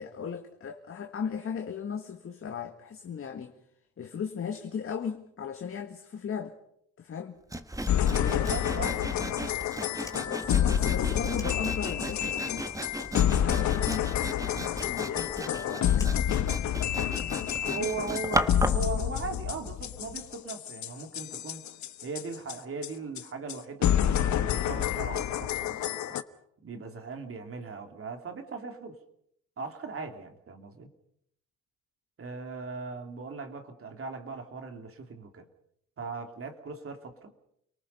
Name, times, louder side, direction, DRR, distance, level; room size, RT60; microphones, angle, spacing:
voice 1, 0.0-3.5 4.0-6.6 7.0-7.4 8.1-9.0 10.2-12.7 13.4-18.2 21.3-21.4, left 7 dB, 45° left, 1.7 m, -37 dB
Sawing, 7.5-18.9, right 1 dB, 10° right, 1.6 m, -36 dB
sound 1, 7.9-22.6 22.8-22.9 23.2-23.3 23.5-23.6 23.8-26.2, left 10 dB, 70° left, 1.1 m, -28 dB
voice 2, 8.2-9.0 17.6-21.6 22.0-26.2 26.6-29.0 29.6-30.9 32.2-35.5 36.0-37.3, right 4 dB, 45° right, 2.8 m, -39 dB
Fire, 9.9-12.2 12.5-13.5 13.8-17.0, left 2 dB, 10° left, 2.8 m, -51 dB
30.0 x 19.0 x 5.5 m
cardioid pair, 90°, 30 cm